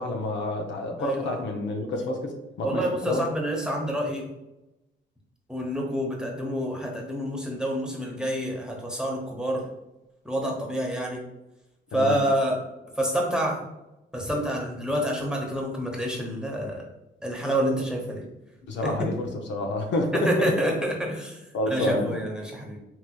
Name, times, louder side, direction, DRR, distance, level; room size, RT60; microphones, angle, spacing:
voice 1, 0.0-3.3 11.9-12.2 18.6-20.5 21.5-22.2, left 1 dB, 65° left, 3 dB, 0.6 m, -29 dB
voice 2, 1.0-1.4 2.6-4.3 5.5-9.6 10.2-11.2 11.9-12.6 13.0-13.6 14.1-16.8 17.2-18.2 18.8-18.9 20.1-22.8, equal, 5° right, -1 dB, 0.8 m, -28 dB
3.2 x 2.9 x 2.3 m, 0.96 s
cardioid pair, 90°, 20 cm